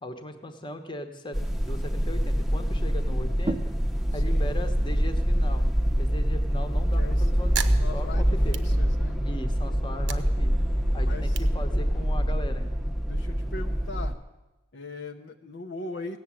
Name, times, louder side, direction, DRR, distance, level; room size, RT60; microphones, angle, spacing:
voice 1, 0.0-3.7 4.1-5.6 6.0-8.6 9.2-10.5 10.9-12.7, left 1 dB, 25° left, 7 dB, 1.1 m, -38 dB
sound 1, 1.3-14.1, equal, ahead, 0.8 m, -25 dB
sound 2, 3.3-8.5, right 2 dB, 25° right, 0.5 m, -40 dB
voice 2, 4.1-4.5 7.0-7.3 7.8-9.2 11.0-11.5 13.1-14.1 14.7-16.2, left 3 dB, 60° left, 4 dB, 0.7 m, -39 dB
sound 3, 7.5-9.4 9.8-12.4, right 8 dB, 65° right, 0.8 m, -39 dB
17.0 x 7.2 x 8.9 m, 1.1 s
head